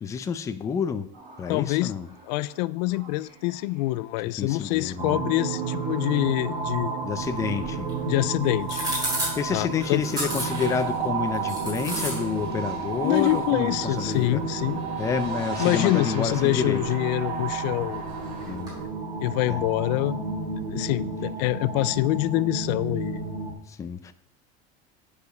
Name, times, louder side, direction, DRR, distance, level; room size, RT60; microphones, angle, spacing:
voice 1, 0.0-1.1 1.4-2.1 4.4-5.2 7.0-7.9 9.4-14.4 15.0-16.8 18.5-18.7 19.5-19.6 23.7-24.1, left 6 dB, 15° left, 0.4 m, -29 dB
sound 1, 1.1-18.6, right 2 dB, 40° right, 3.8 m, -45 dB
voice 2, 1.5-1.9 2.2-7.0 8.0-8.8 9.5-10.0 13.0-14.9 15.6-18.3 19.2-20.2 20.7-23.2, left 18 dB, 85° left, 0.4 m, -25 dB
sound 2, 5.0-23.5, right 4 dB, 65° right, 2.5 m, -31 dB
sound 3, 7.2-18.8, right 1 dB, 20° right, 4.5 m, -37 dB
9.4 x 5.0 x 6.4 m
cardioid pair, 170°, 21 cm